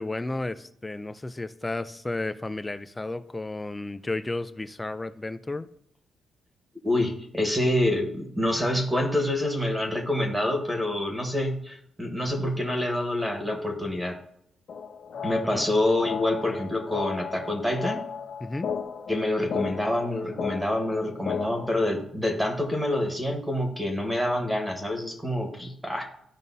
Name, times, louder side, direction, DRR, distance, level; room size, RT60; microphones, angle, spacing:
voice 1, 0.0-5.7 15.5-15.6 18.4-18.7, left 2 dB, 15° left, 13 dB, 0.4 m, -33 dB
voice 2, 6.8-14.2 15.2-18.0 19.1-26.1, left 1 dB, 5° right, 3 dB, 1.4 m, -27 dB
sound 1, 14.7-21.7, left 7 dB, 55° left, 0.7 m, -35 dB
14.0 x 5.3 x 2.7 m, 0.72 s
cardioid pair, 150°, 0 cm